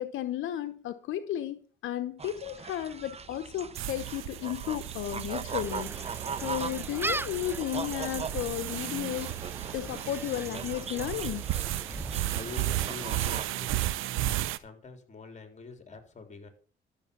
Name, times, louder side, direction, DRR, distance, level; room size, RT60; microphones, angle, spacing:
voice 1, 0.0-5.9 6.4-9.4 9.7-11.4, left 12 dB, 80° left, 0.9 m, -34 dB
sound 1, 2.2-13.5, right 5 dB, 30° right, 1.1 m, -41 dB
sound 2, 3.7-14.6, right 14 dB, 90° right, 0.7 m, -34 dB
Gull seagull, 5.5-13.3, right 2 dB, 10° right, 0.5 m, -40 dB
voice 2, 12.0-16.5, left 3 dB, 35° left, 3.7 m, -46 dB
13.0 x 6.8 x 6.9 m
cardioid pair, 90°, 20 cm